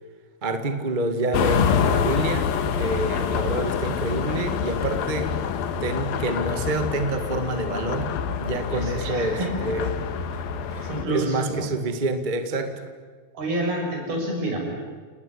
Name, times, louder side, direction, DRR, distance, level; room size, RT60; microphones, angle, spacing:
voice 1, 0.4-5.4 5.8-9.4 9.6-10.0 10.7-12.7, right 2 dB, 25° right, 8 dB, 0.9 m, -27 dB
sound 1, 1.3-11.0, left 7 dB, 75° left, 3.1 m, -26 dB
voice 2, 8.7-9.7 10.8-11.7 13.3-14.7, right 1 dB, 80° right, 1 dB, 8.3 m, -28 dB
29.5 x 19.0 x 10.0 m, 1.5 s
omnidirectional pair, 4.3 m